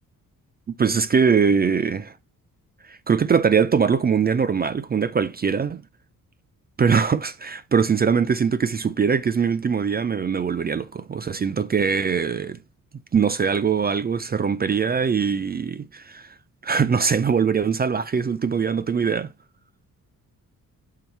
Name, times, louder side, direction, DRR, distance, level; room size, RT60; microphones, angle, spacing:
voice 1, 0.7-2.1 2.9-5.8 6.8-12.6 13.1-16.3 16.6-19.3, right 6 dB, 30° right, 0.4 m, -22 dB
5.6 x 4.9 x 4.5 m
cardioid pair, 110°, 35 cm